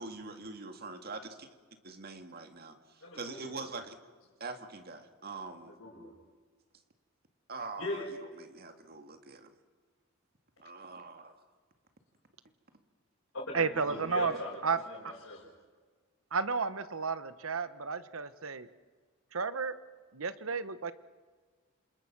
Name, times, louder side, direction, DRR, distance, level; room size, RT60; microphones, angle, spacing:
voice 1, 0.0-1.5 1.8-2.8 3.1-4.0 4.4-5.7 7.5-8.0 8.4-9.5 10.6-11.3, right 3 dB, 45° right, 6 dB, 2.2 m, -43 dB
voice 2, 3.0-3.7 5.5-6.1 7.8-8.1 13.3-15.4, left 2 dB, 70° left, -6 dB, 6.3 m, -40 dB
voice 3, 13.5-14.3 14.6-14.8 16.3-18.7 19.3-19.7 20.1-20.9, right 5 dB, 75° right, 13 dB, 1.1 m, -32 dB
27.5 x 27.0 x 6.1 m, 1.5 s
head